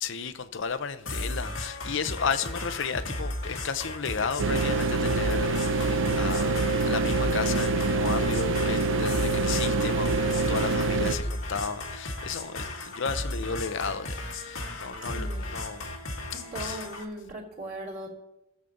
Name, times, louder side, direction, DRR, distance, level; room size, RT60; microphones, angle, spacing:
voice 1, 0.0-15.9 16.6-16.8, left 5 dB, 65° left, 0.7 m, -34 dB
sound 1, 1.1-17.1, left 1 dB, 90° left, 1.7 m, -35 dB
sound 2, 4.4-11.1, right 3 dB, 65° right, 0.7 m, -25 dB
voice 2, 15.0-15.6 16.5-18.1, right 1 dB, 45° right, 2.9 m, -38 dB
18.5 x 7.4 x 3.9 m
head